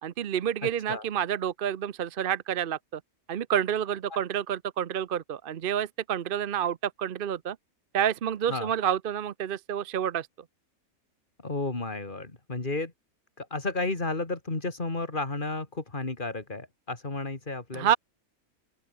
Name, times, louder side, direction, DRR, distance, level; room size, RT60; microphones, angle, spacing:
voice 1, 0.0-3.0 3.3-7.6 7.9-10.3 17.7-18.0, right 9 dB, 50° right, 0.7 m, -29 dB
voice 2, 11.4-12.9 13.4-17.9, left 2 dB, 35° left, 2.9 m, -32 dB
open air
omnidirectional pair, 1.5 m